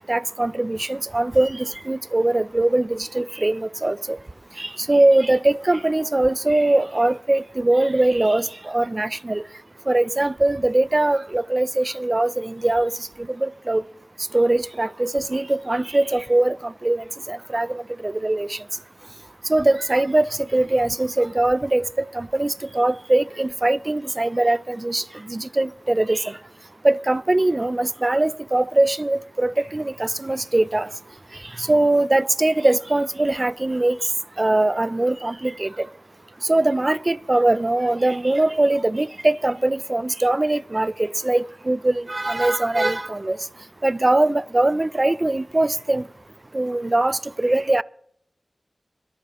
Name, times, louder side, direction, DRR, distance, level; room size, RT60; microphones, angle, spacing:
voice 1, 0.1-4.2 4.6-9.4 9.9-12.9 13.4-13.8 14.3-18.6 19.5-26.4 26.8-30.9 31.6-34.0 34.4-35.9 36.4-43.4 43.8-46.0 46.5-47.8, right 2 dB, 35° right, 0.4 m, -21 dB
25.5 x 11.5 x 3.0 m
wide cardioid pair, 55°, 0 cm